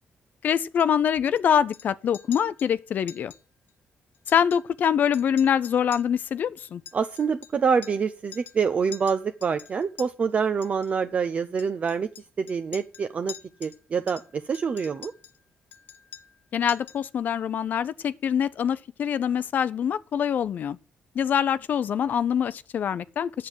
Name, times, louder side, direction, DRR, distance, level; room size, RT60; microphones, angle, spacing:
voice 1, 0.4-3.3 4.3-6.8 16.5-20.8 21.2-23.5, left 8 dB, 60° left, 0.5 m, -24 dB
Chink clink, 0.8-1.4 1.7-1.9 2.1-2.7 3.1-3.4 3.7-3.8 4.1-4.9 5.1-8.1 8.3-8.6 8.9-10.1 10.6-10.9 11.6-13.8 14.1-15.4 15.7-16.4 16.7-17.1, left 9 dB, 80° left, 0.8 m, -46 dB
voice 2, 6.9-12.1 12.4-13.3 13.6-15.1, right 6 dB, 45° right, 0.6 m, -26 dB
8.5 x 7.5 x 7.9 m
cardioid pair, 100°, 3 cm